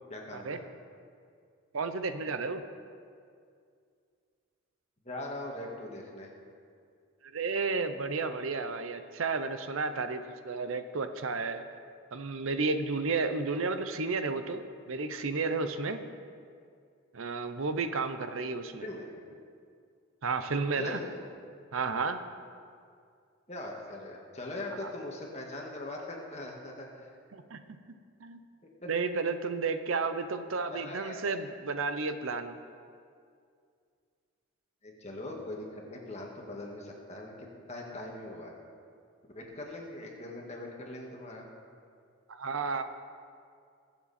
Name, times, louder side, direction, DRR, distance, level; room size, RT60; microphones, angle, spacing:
voice 1, 0.1-0.6 5.1-6.3 18.8-19.1 20.8-21.2 23.5-27.1 28.8-28.9 30.7-31.3 34.8-38.5 39.3-41.5, left 1 dB, 30° left, -1 dB, 1.8 m, -41 dB
voice 2, 1.7-2.6 7.3-11.6 12.1-14.6 14.9-16.0 17.1-18.8 20.2-21.0 21.7-22.2 24.8-24.9 27.3-27.6 28.2-28.4 28.9-32.6 42.3-42.8, right 4 dB, 75° right, 9 dB, 0.7 m, -32 dB
21.5 x 7.5 x 4.2 m, 2.3 s
head